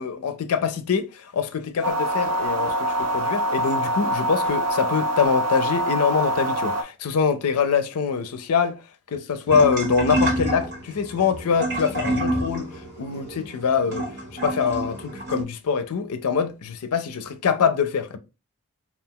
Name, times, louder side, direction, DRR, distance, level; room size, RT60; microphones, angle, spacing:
voice 1, 0.0-8.8 9.1-12.7 13.0-14.0 14.4-18.2, left 6 dB, 90° left, 0.4 m, -24 dB
sound 1, 1.8-6.8, right 1 dB, 85° right, 0.5 m, -24 dB
sound 2, 9.5-15.4, right 1 dB, 40° right, 1.4 m, -28 dB
2.3 x 2.3 x 3.6 m
head